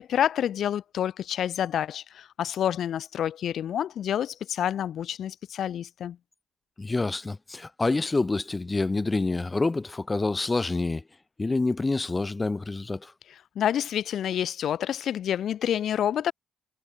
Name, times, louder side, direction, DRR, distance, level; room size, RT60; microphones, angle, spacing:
voice 1, 0.0-6.2 13.6-16.3, left 10 dB, 65° left, 0.7 m, -28 dB
voice 2, 6.8-11.0 11.4-13.1, left 3 dB, 20° left, 0.4 m, -27 dB
cardioid pair, 90°, 0 cm